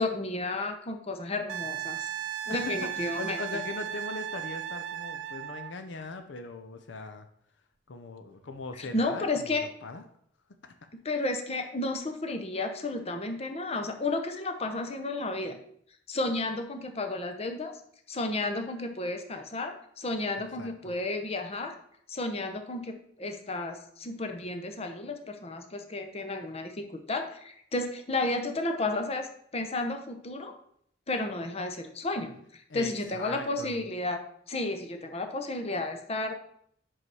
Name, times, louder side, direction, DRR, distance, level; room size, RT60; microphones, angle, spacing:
voice 1, 0.0-2.1 2.5-3.4 8.8-9.6 11.0-15.6 16.1-17.7 18.1-21.7 22.1-29.3 29.5-30.6 31.1-34.2 34.5-36.3, left 2 dB, 35° left, 6 dB, 0.8 m, -32 dB
Wind instrument woodwind instrument, 1.5-5.7 8.4-8.5, right 10 dB, 70° right, 0.5 m, -36 dB
voice 2, 2.5-7.3 7.9-10.0 10.6-10.7 20.6-20.9 32.7-33.8, left 3 dB, 70° left, 7 dB, 0.6 m, -40 dB
5.6 x 5.3 x 4.7 m, 0.66 s
head